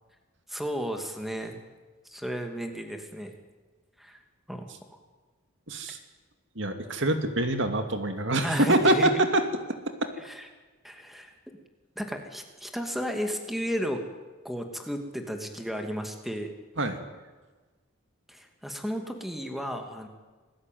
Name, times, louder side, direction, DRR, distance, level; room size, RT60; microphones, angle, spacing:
voice 1, 0.5-1.6 2.0-3.3 4.0-4.2 4.5-5.0 8.4-9.3 10.2-10.5 10.8-11.3 12.0-14.0 14.4-16.5 18.3-20.1, equal, ahead, 4 dB, 2.6 m, -33 dB
voice 2, 5.7-6.0 6.6-9.4 10.0-10.1 16.8-17.0, right 1 dB, 60° right, 7 dB, 2.6 m, -25 dB
27.5 x 20.0 x 9.4 m, 1.3 s
head